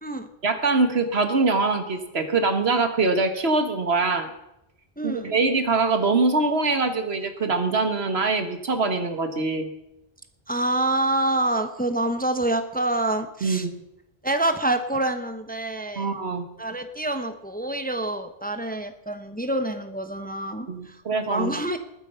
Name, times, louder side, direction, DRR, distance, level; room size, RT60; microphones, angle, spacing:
voice 1, 0.4-4.3 5.0-9.7 13.4-13.7 16.0-16.4 20.7-21.6, right 3 dB, 75° right, 8 dB, 1.8 m, -23 dB
voice 2, 5.0-5.3 10.5-13.7 14.2-16.1 16.6-21.0 21.3-21.8, right 1 dB, 10° left, 8 dB, 0.9 m, -26 dB
20.5 x 9.0 x 5.7 m, 0.88 s
omnidirectional pair, 1.1 m